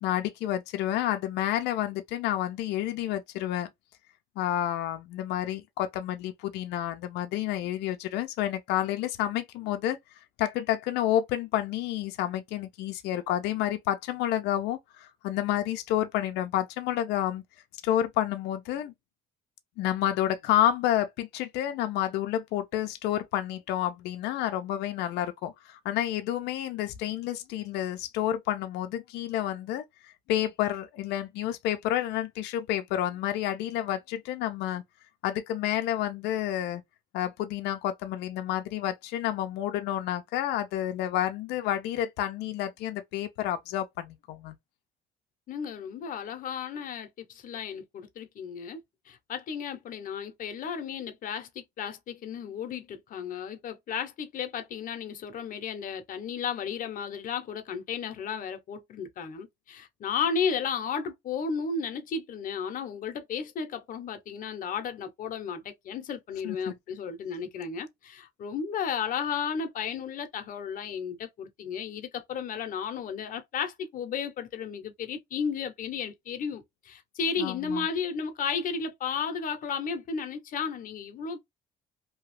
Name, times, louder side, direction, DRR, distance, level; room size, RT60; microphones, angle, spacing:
voice 1, 0.0-3.7 4.4-10.0 10.4-17.4 17.8-18.9 19.8-34.8 35.2-36.8 37.1-44.5 66.4-66.7 77.4-77.9, left 12 dB, 85° left, 0.5 m, -29 dB
voice 2, 45.5-48.8 49.1-81.4, left 6 dB, 55° left, 0.8 m, -34 dB
2.8 x 2.3 x 3.1 m
cardioid pair, 110°, 17 cm